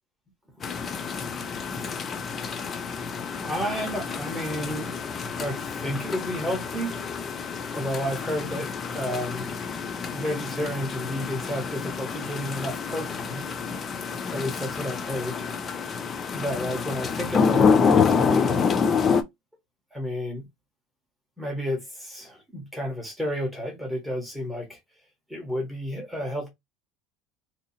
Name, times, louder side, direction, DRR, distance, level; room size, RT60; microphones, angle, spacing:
sound 1, 0.6-19.2, left 6 dB, 20° left, 0.4 m, -27 dB
voice 1, 3.4-4.9 5.3-7.0 7.7-9.5 10.1-13.5 14.3-15.4 16.3-18.6 19.9-20.4 21.4-24.8 25.3-26.5, equal, 5° right, 1.1 m, -31 dB
2.8 x 2.5 x 4.0 m
cardioid pair, 180°, 0 cm